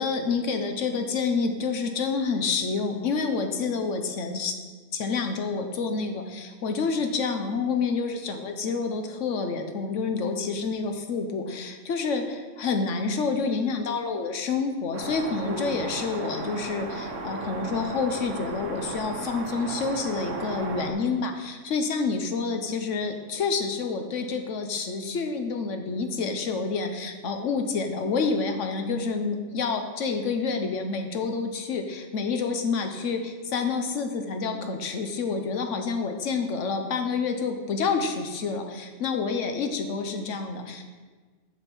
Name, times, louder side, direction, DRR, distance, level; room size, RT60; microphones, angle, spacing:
voice 1, 0.0-4.5 4.9-40.8, left 4 dB, 75° left, 6 dB, 1.2 m, -28 dB
sound 1, 14.9-20.9, right 3 dB, 80° right, 1.3 m, -35 dB
7.3 x 7.1 x 4.5 m, 1.4 s
omnidirectional pair, 1.3 m